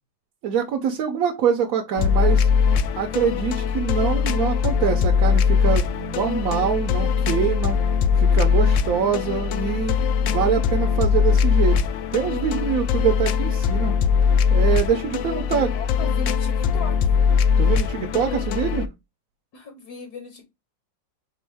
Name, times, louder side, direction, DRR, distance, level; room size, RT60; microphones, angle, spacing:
voice 1, 0.4-2.5 3.0-7.8 8.2-11.8 12.1-13.9 14.5-15.7 17.6-18.9, right 7 dB, 65° right, 0.9 m, -24 dB
sound 1, 2.0-18.9, left 6 dB, 80° left, 1.3 m, -21 dB
voice 2, 15.7-17.2 19.5-20.4, left 5 dB, 65° left, 1.3 m, -37 dB
4.4 x 3.0 x 3.4 m
omnidirectional pair, 2.0 m